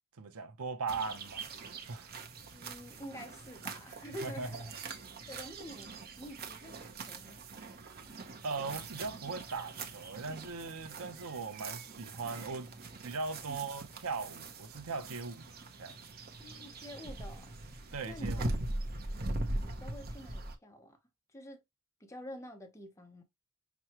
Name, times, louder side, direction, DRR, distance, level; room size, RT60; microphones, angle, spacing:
voice 1, 0.2-2.1 4.2-4.6 8.4-12.7 13.0-15.5 15.8-16.0 17.9-18.4, right 4 dB, 75° right, 0.8 m, -39 dB
sound 1, 0.9-20.5, right 2 dB, 45° right, 0.8 m, -42 dB
voice 2, 2.5-4.7 5.3-7.4 13.5-13.7 16.4-17.5 18.1-18.7 19.3-21.0 21.3-21.6 22.0-23.2, equal, 15° left, 0.8 m, -48 dB
6.0 x 2.3 x 2.9 m
head